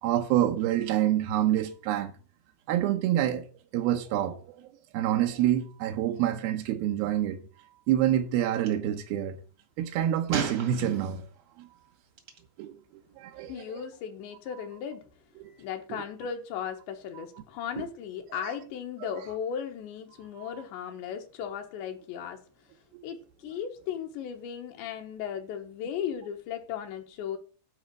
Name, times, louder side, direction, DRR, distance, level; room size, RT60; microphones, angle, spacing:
voice 1, 0.0-2.1 2.7-3.5 3.7-4.6 4.9-7.4 7.9-9.4 9.8-11.3 11.6-11.7 12.6-12.8 13.2-13.6 15.4-15.5 15.9-16.0 17.8-17.9 18.4-18.5 20.4-20.5, right 12 dB, 80° right, 2.2 m, -27 dB
Gunshot gunfire, 8.5-8.7 10.3-11.3 12.2-12.4, right 5 dB, 60° right, 1.6 m, -34 dB
voice 2, 13.5-15.0 15.6-22.4 23.0-27.4, left 8 dB, 75° left, 3.3 m, -36 dB
11.5 x 4.9 x 7.6 m
omnidirectional pair, 5.3 m